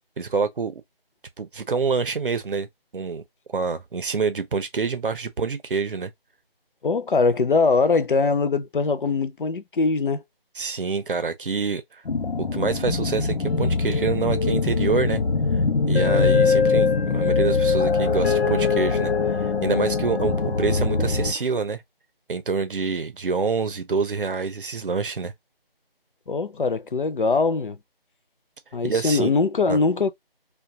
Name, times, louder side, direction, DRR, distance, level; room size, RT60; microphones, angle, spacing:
voice 1, 0.2-0.8 1.4-2.7 2.9-3.2 3.5-6.1 10.6-12.0 12.4-15.2 15.9-21.8 22.3-25.3 28.8-29.3 29.7-29.8, right 5 dB, 60° right, 0.6 m, -26 dB
voice 2, 6.8-10.2 26.3-27.8 28.7-30.1, left 4 dB, 60° left, 0.4 m, -22 dB
sound 1, 12.0-21.3, left 4 dB, 85° left, 0.7 m, -22 dB
2.3 x 2.2 x 2.7 m
figure-of-eight pair, 165°, 30 cm